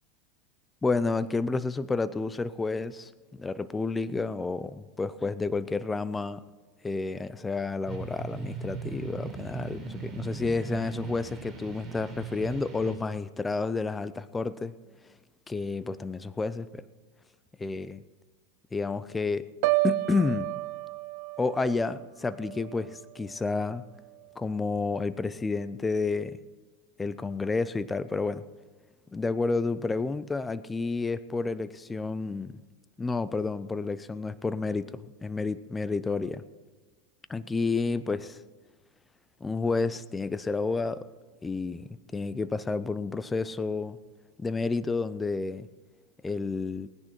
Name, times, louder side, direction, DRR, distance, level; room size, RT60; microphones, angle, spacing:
voice 1, 0.8-3.1 3.4-6.4 6.8-14.7 15.5-16.8 17.6-18.0 18.7-19.5 19.8-20.5 21.4-23.8 24.4-26.4 27.0-28.5 29.1-32.6 33.0-36.4 37.3-38.4 39.4-41.1 41.4-44.0 44.4-45.7 46.2-46.9, left 3 dB, 10° left, 15 dB, 0.5 m, -30 dB
sound 1, 7.9-12.9, right 5 dB, 15° right, 4.5 m, -39 dB
Piano, 19.6-23.6 24.0-24.3, right 20 dB, 60° right, 0.7 m, -32 dB
19.0 x 10.0 x 4.4 m, 1.4 s
supercardioid pair, 130°, 0 cm